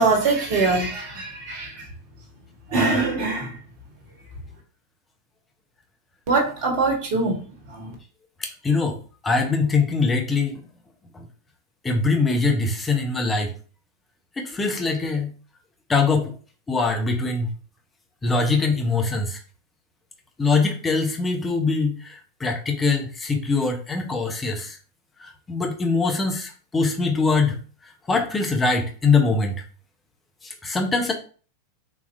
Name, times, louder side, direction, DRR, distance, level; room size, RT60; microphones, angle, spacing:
voice 1, 0.0-1.8 2.7-3.5 6.3-7.4 7.7-7.9, right 3 dB, 50° right, 0 dB, 1.4 m, -22 dB
voice 2, 8.4-9.0 9.2-10.6 11.1-11.2 11.8-13.5 14.4-15.3 15.9-16.3 16.7-17.5 18.2-19.4 20.4-24.8 25.5-27.6 28.1-29.5 30.4-31.1, left 4 dB, 15° left, 3 dB, 0.9 m, -22 dB
4.0 x 2.9 x 2.6 m, 0.39 s
figure-of-eight pair, 90°, 0 cm